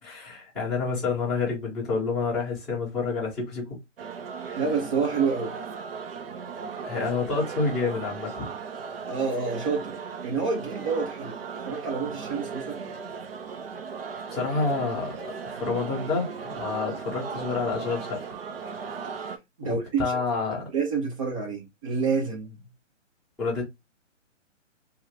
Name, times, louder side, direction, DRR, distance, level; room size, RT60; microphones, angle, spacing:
voice 1, 0.0-3.8 6.8-8.5 14.3-18.2 19.6-20.6 23.4-23.6, left 4 dB, ahead, 1.3 m, -28 dB
sound 1, 4.0-19.4, right 5 dB, 50° right, 0.6 m, -37 dB
voice 2, 4.5-5.5 9.1-10.0 10.2-12.9 19.6-20.2 20.7-22.6, right 5 dB, 25° right, 0.9 m, -28 dB
2.9 x 2.3 x 3.5 m
hypercardioid pair, 155°, 38 cm